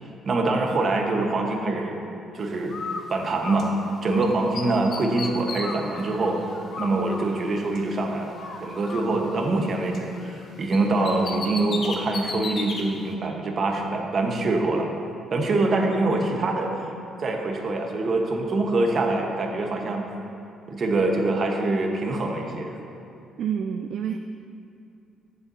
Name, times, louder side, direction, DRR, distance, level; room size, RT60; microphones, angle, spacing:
voice 1, 0.2-2.0 2.3-2.8 3.1-3.7 4.0-6.4 6.8-14.9 15.3-16.9 17.2-20.1 20.7-22.7, right 2 dB, 50° right, 2 dB, 1.3 m, -24 dB
Bird, 2.7-4.3 4.5-8.0 8.3-10.4 10.7-12.8, left 3 dB, 60° left, 1.1 m, -35 dB
voice 2, 23.4-24.2, right 8 dB, 65° right, 7 dB, 0.3 m, -28 dB
14.5 x 6.9 x 2.8 m, 2.6 s
cardioid pair, 80°, 0 cm